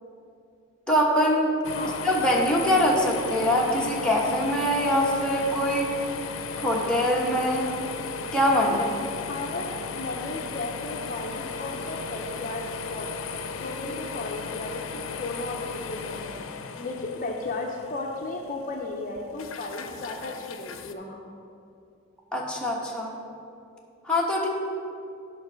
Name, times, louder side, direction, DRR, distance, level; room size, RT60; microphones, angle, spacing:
voice 1, 0.9-1.5 2.0-5.9 6.6-7.7 8.3-8.9 13.9-14.0 22.3-23.1 24.0-24.5, equal, 5° left, -4 dB, 1.2 m, -23 dB
sound 1, 1.6-20.9, left 5 dB, 85° left, 0.5 m, -36 dB
voice 2, 9.3-13.1 13.6-16.4 16.8-21.2, left 2 dB, 40° left, 1 dB, 0.6 m, -35 dB
9.7 x 4.5 x 6.2 m, 2.6 s
head